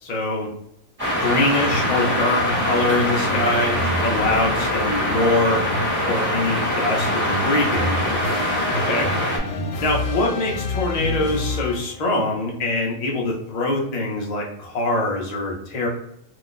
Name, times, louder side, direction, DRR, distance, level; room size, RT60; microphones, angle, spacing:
voice 1, 0.0-0.5 1.2-5.6 6.0-8.4 8.7-9.1 9.8-15.9, left 2 dB, 55° left, -1 dB, 0.4 m, -24 dB
sound 1, 1.0-9.4, equal, 10° right, 1.0 m, -23 dB
sound 2, 1.7-12.1, left 2 dB, 85° left, 1.0 m, -30 dB
2.5 x 2.4 x 3.6 m, 0.75 s
omnidirectional pair, 1.4 m